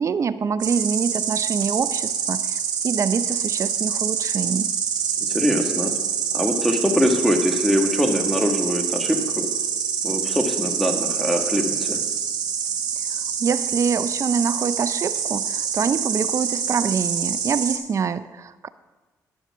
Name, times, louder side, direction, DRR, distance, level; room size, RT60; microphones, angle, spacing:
voice 1, 0.0-4.7 13.4-18.7, right 6 dB, 45° right, 14 dB, 0.5 m, -25 dB
Insect, 0.6-17.8, right 7 dB, 70° right, 1.5 m, -26 dB
voice 2, 5.2-5.9 6.3-9.5 10.0-12.0, equal, 5° left, 3 dB, 1.7 m, -23 dB
10.5 x 7.1 x 6.0 m, 1.2 s
supercardioid pair, 65°, 7 cm